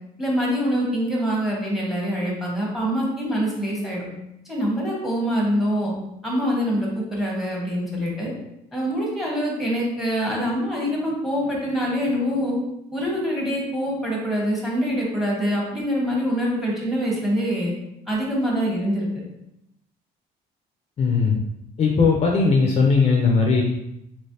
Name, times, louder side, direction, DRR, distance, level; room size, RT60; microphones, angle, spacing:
voice 1, 0.2-4.0 4.5-5.9 6.2-8.3 8.7-12.6 12.9-17.7 18.1-19.1, equal, ahead, -3 dB, 1.2 m, -24 dB
voice 2, 21.0-21.3 21.8-23.6, left 4 dB, 40° left, -1 dB, 0.5 m, -18 dB
3.2 x 2.9 x 2.8 m, 0.83 s
cardioid pair, 110°, 17 cm